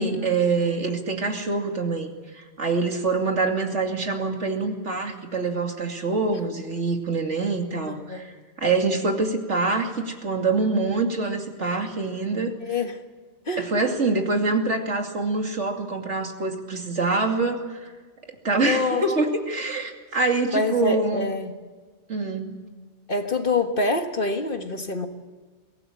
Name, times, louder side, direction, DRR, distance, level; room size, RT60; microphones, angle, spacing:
voice 1, 0.0-12.5 13.6-17.9 18.4-21.3 22.1-22.6, right 3 dB, 85° right, 3 dB, 3.0 m, -25 dB
voice 2, 7.9-8.2 12.6-13.0 13.5-13.7 18.5-19.0 20.5-21.5 23.1-25.1, left 3 dB, 50° left, 6 dB, 1.8 m, -26 dB
23.0 x 18.0 x 8.6 m, 1.4 s
omnidirectional pair, 1.2 m